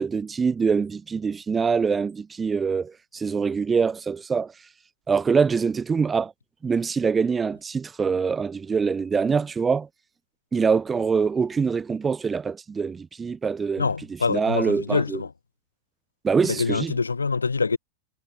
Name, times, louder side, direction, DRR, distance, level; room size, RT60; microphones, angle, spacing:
voice 1, 0.0-4.5 5.1-6.3 6.6-9.9 10.5-13.9 14.3-15.2 16.2-16.9, right 5 dB, 15° right, 1.1 m, -24 dB
voice 2, 13.8-15.3 16.5-17.8, left 4 dB, 75° left, 2.4 m, -25 dB
figure-of-eight pair, 90°, 0 cm